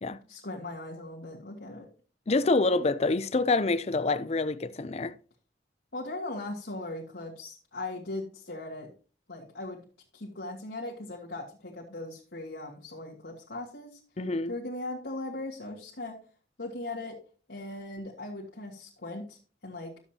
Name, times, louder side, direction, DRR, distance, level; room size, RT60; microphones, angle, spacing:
voice 1, 0.3-1.9 5.9-8.9 9.3-9.8 10.1-14.0 14.5-16.2 16.6-17.2 17.5-20.0, left 2 dB, 80° left, 1.8 m, -39 dB
voice 2, 2.3-5.1 14.2-14.5, left 3 dB, 35° left, 0.5 m, -26 dB
12.5 x 7.2 x 2.9 m
head